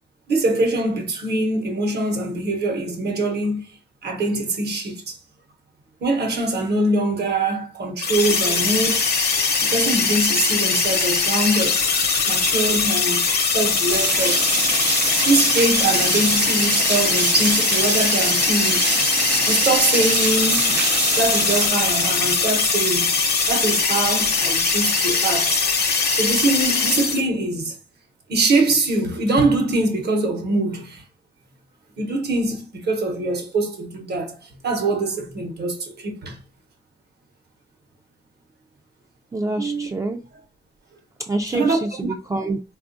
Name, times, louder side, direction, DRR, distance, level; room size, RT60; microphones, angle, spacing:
voice 1, 0.3-3.7 4.0-5.2 6.0-9.1 9.6-11.9 12.3-13.3 13.5-14.5 15.3-18.9 19.5-20.9 21.2-23.2 23.5-25.6 26.1-27.7 28.3-31.0 32.0-36.4 39.5-39.9 41.5-41.9, right 2 dB, 65° right, 0.9 m, -23 dB
sound 1, 8.0-27.2, left 4 dB, 60° left, 0.8 m, -21 dB
sound 2, 13.9-21.7, right 5 dB, 85° right, 0.5 m, -25 dB
voice 2, 39.3-40.2 41.2-42.8, right 2 dB, 15° right, 0.3 m, -26 dB
3.6 x 2.4 x 2.5 m
cardioid pair, 85°, 18 cm